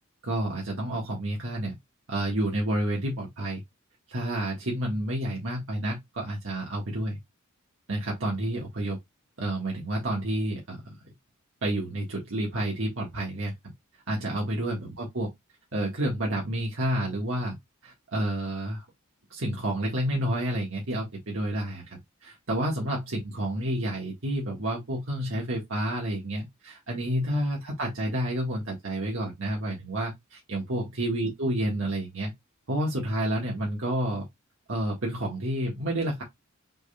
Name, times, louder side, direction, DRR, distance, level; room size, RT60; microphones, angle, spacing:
voice 1, 0.2-1.7 2.1-3.6 4.1-7.2 7.9-9.0 9.4-10.9 11.6-13.5 14.1-15.3 15.7-17.5 17.8-18.8 19.3-32.3 32.7-34.2 34.7-36.2, right 1 dB, 70° right, 1.6 m, -29 dB
6.1 x 3.7 x 2.2 m
head